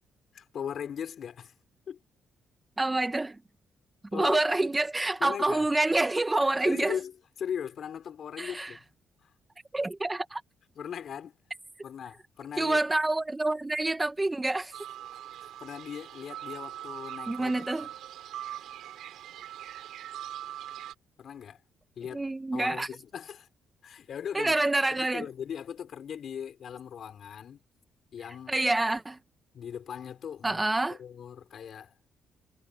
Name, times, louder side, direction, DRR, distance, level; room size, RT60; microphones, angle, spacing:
voice 1, 0.3-1.5 1.9-2.0 4.1-4.6 5.2-5.7 6.6-8.8 9.2-9.3 10.8-11.3 11.8-12.8 15.6-17.7 21.2-21.6 22.0-22.2 22.5-23.5 23.8-24.6 25.0-27.6 28.1-28.5 29.5-30.6 30.9-31.9, left 8 dB, 60° left, 4.1 m, -39 dB
voice 2, 2.8-3.4 4.1-7.0 8.4-8.7 9.7-10.4 12.6-14.7 17.3-17.9 22.1-22.9 24.3-25.3 28.5-29.2 30.4-31.0, right 2 dB, 15° right, 1.9 m, -27 dB
sound 1, 14.7-20.9, right 12 dB, 80° right, 4.5 m, -42 dB
cardioid pair, 90°, 0 cm